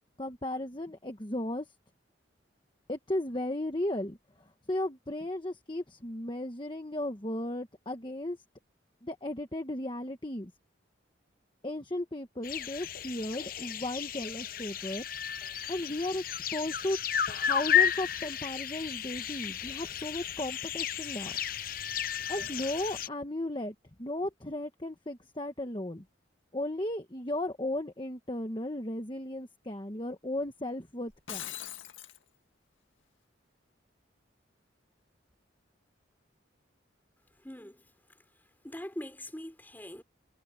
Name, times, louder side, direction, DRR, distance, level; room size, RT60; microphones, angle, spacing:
voice 1, 0.2-1.7 2.9-4.2 4.7-8.4 9.0-10.5 11.6-15.0 15.7-17.0 17.3-21.4 22.3-23.7 24.0-26.0 26.5-31.5, left 1 dB, 25° left, 1.3 m, -35 dB
sound 1, 12.4-23.1, left 9 dB, 45° left, 0.8 m, -33 dB
Shatter, 31.1-32.2, left 11 dB, 85° left, 1.9 m, -41 dB
voice 2, 37.4-37.8 38.6-40.0, left 1 dB, 10° left, 3.6 m, -42 dB
head